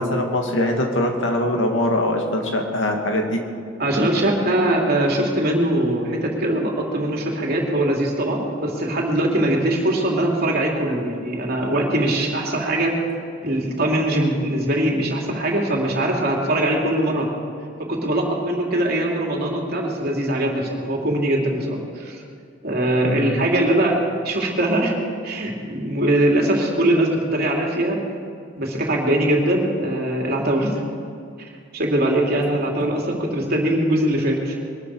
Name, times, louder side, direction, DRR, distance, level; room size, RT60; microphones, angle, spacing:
voice 1, 0.0-3.4 23.0-23.4, left 1 dB, 85° left, 2 dB, 2.3 m, -22 dB
voice 2, 3.8-13.0 13.4-17.3 17.8-22.2 22.6-24.0 24.2-25.0 25.2-28.0 28.6-30.7 31.7-34.6, right 1 dB, 55° right, 0 dB, 3.0 m, -21 dB
22.5 x 13.0 x 4.9 m, 2.3 s
head